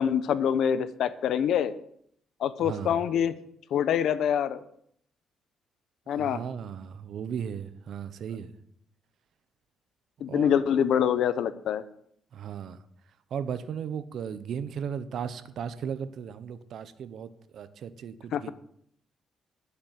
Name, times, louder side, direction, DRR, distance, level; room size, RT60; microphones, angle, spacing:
voice 1, 0.0-1.7 2.4-3.3 3.7-4.6 6.1-6.4 10.2-11.8 18.3-18.5, left 8 dB, 75° left, 13 dB, 0.9 m, -25 dB
voice 2, 2.6-3.0 6.2-8.6 10.3-10.7 12.3-12.8 13.3-18.5, right 7 dB, 65° right, 12 dB, 1.0 m, -36 dB
11.0 x 8.4 x 7.6 m, 0.67 s
cardioid pair, 90°, 0 cm